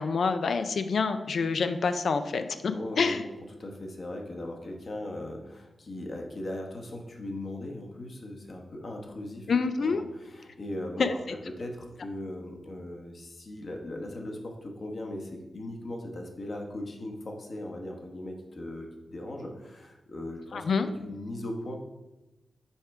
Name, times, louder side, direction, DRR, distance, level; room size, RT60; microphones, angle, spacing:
voice 1, 0.0-3.2 9.5-10.0 11.0-11.1 20.5-20.9, left 5 dB, 70° left, 9 dB, 0.4 m, -27 dB
voice 2, 2.7-3.1 3.6-9.5 9.8-21.7, left 1 dB, 50° left, 2 dB, 1.0 m, -39 dB
5.6 x 4.4 x 4.7 m, 1.0 s
wide cardioid pair, 115°, 0 cm